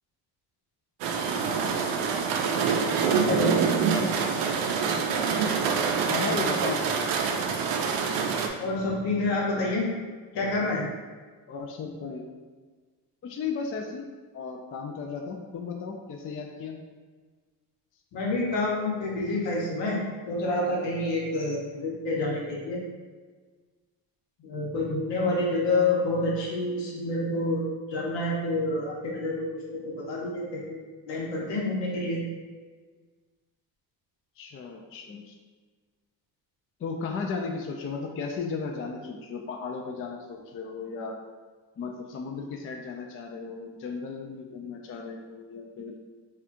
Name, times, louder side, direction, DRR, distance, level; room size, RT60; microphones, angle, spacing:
sound 1, 1.0-8.5, right 5 dB, 80° right, 0.5 m, -26 dB
voice 1, 3.3-3.6 8.6-9.9 10.3-10.8 18.1-20.0 20.3-22.8 24.4-27.6 27.9-29.4 29.7-29.8 30.1-30.8 31.1-32.2, left 2 dB, 80° left, -3 dB, 1.0 m, -28 dB
voice 2, 6.0-6.8 11.5-12.2 13.2-14.0 14.3-16.8 21.6-21.9 34.4-35.4 36.8-41.2 41.8-46.0, left 5 dB, 35° left, 2 dB, 0.4 m, -35 dB
4.3 x 2.4 x 2.5 m, 1.4 s
cardioid pair, 95°, 43 cm